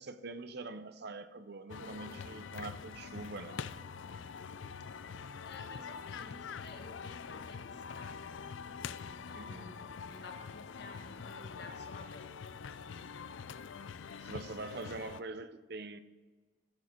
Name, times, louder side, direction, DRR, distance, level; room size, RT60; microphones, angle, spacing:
voice 1, 0.0-3.6 9.3-9.7 14.2-16.0, right 3 dB, 60° right, 0.7 m, -44 dB
sound 1, 1.7-15.2, left 6 dB, 85° left, 0.5 m, -45 dB
voice 2, 5.4-8.6 9.0-12.6, left 3 dB, 60° left, 1.5 m, -53 dB
15.0 x 6.7 x 4.5 m
head